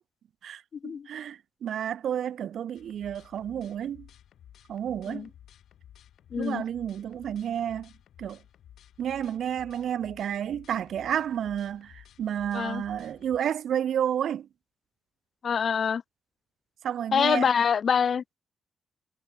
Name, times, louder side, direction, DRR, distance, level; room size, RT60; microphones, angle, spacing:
voice 1, 0.4-4.1 4.7-5.3 6.4-7.9 8.2-8.4 9.0-14.5 16.8-17.5, right 9 dB, 70° right, 0.9 m, -31 dB
sound 1, 2.7-13.4, left 10 dB, 80° left, 6.7 m, -54 dB
voice 2, 6.3-6.6 12.5-12.8 15.4-16.0 17.1-18.2, left 7 dB, 50° left, 2.5 m, -25 dB
cardioid pair, 100°, 0 cm